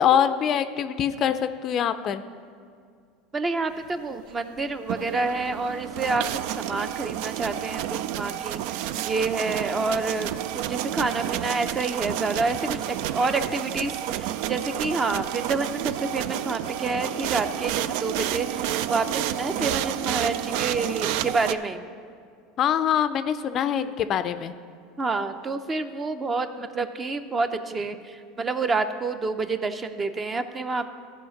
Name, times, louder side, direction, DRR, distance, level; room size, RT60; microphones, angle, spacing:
voice 1, 0.0-2.2 19.6-19.7 22.6-24.5, left 9 dB, 40° left, 11 dB, 0.4 m, -24 dB
voice 2, 3.3-6.2 6.6-21.9 25.0-30.9, right 3 dB, 20° right, 9 dB, 0.6 m, -28 dB
sound 1, 4.7-21.5, right 11 dB, 70° right, 0.3 m, -30 dB
14.5 x 4.9 x 5.9 m, 2.2 s
supercardioid pair, 125°, 0 cm